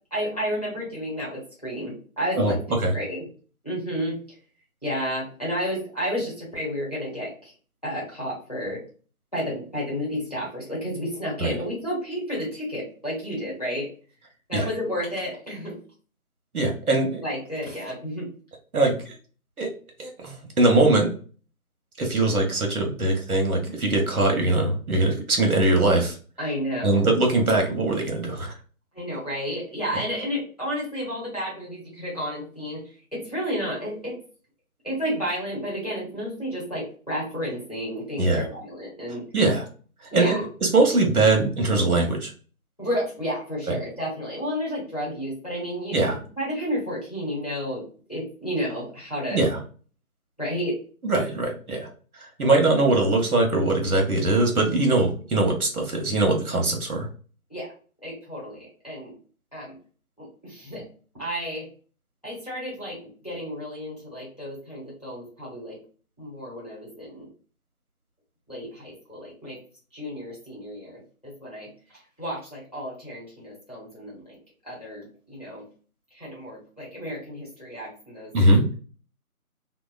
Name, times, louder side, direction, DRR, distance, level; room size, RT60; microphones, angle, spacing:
voice 1, 0.1-2.6 2.9-3.3 3.6-4.2 4.8-7.5 7.8-8.8 9.3-13.9 14.5-15.8 17.2-18.3 26.4-27.1 28.9-32.8 33.1-34.2 34.8-39.2 40.1-40.4 42.8-47.8 48.1-49.4 50.4-50.8 57.5-57.7 58.0-59.1 59.5-59.7 60.2-60.9 61.1-61.7 62.2-63.0 63.2-65.8 66.2-67.3 68.5-69.6 69.9-74.4 74.6-75.7 76.1-78.3, equal, 25° left, -7 dB, 0.9 m, -31 dB
voice 2, 16.5-17.2 18.7-19.1 19.6-19.7 20.0-21.1 22.0-26.2 26.8-28.5 38.2-38.4 39.3-39.6 40.1-40.4 40.6-42.3 43.7-43.8 45.9-46.2 49.3-49.6 51.0-51.9 52.4-57.1 78.3-78.6, right 2 dB, 75° right, 2 dB, 1.0 m, -21 dB
2.7 x 2.1 x 2.4 m, 0.40 s
figure-of-eight pair, 170°, 44 cm